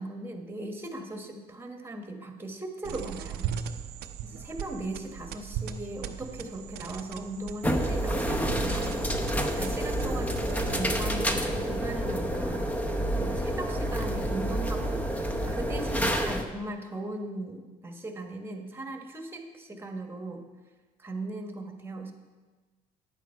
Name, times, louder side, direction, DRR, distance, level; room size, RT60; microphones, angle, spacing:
voice 1, 0.0-3.5 4.2-9.0 9.6-12.7 13.2-20.5 21.0-22.1, right 2 dB, 15° right, 3 dB, 1.4 m, -38 dB
sound 1, 2.8-11.3, right 8 dB, 70° right, 0.7 m, -38 dB
sound 2, 7.6-16.4, equal, 10° left, 0.9 m, -29 dB
10.5 x 8.3 x 4.5 m, 1.3 s
cardioid pair, 110°, 17 cm